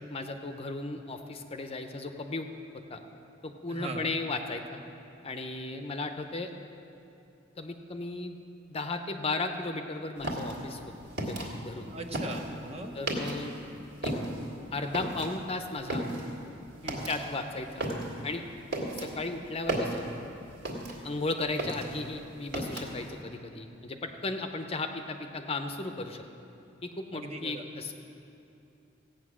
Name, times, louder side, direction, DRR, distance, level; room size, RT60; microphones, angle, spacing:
voice 1, 0.1-2.5 2.7-3.0 3.4-4.8 5.2-6.5 7.6-8.4 8.7-10.8 11.3-11.9 12.9-14.1 14.7-16.1 17.1-17.9 18.2-18.4 18.9-20.1 21.0-26.2 26.8-27.9, left 3 dB, 30° left, 6 dB, 0.7 m, -35 dB
voice 2, 3.7-4.2 11.9-12.9 16.8-17.1 27.1-27.6, right 2 dB, 35° right, 4 dB, 0.9 m, -39 dB
sound 1, 10.2-13.6 13.9-21.2 21.5-23.1, right 1 dB, 60° right, 2.0 m, -35 dB
15.5 x 9.0 x 6.2 m, 2.7 s
head